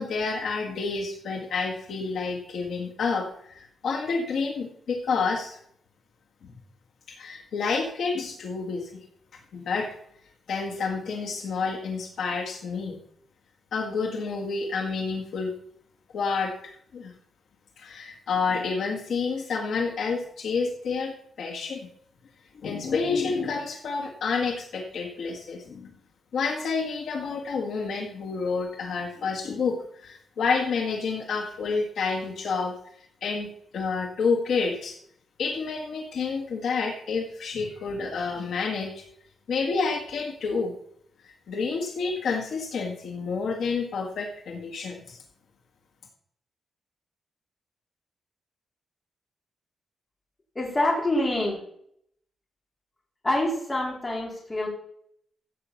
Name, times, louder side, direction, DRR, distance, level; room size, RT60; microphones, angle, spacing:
voice 1, 0.0-5.6 6.4-6.5 7.2-8.9 9.5-9.9 10.5-13.0 13.7-15.5 16.1-16.5 16.9-17.1 17.8-21.9 22.6-25.9 26.3-32.7 33.2-34.9 35.4-39.0 39.5-40.7 41.2-45.2, left 4 dB, 65° left, 2 dB, 1.7 m, -29 dB
voice 2, 50.6-51.6 53.2-54.7, left 1 dB, 20° left, -2 dB, 4.0 m, -26 dB
15.0 x 5.8 x 7.1 m, 0.68 s
wide cardioid pair, 160°, 0 cm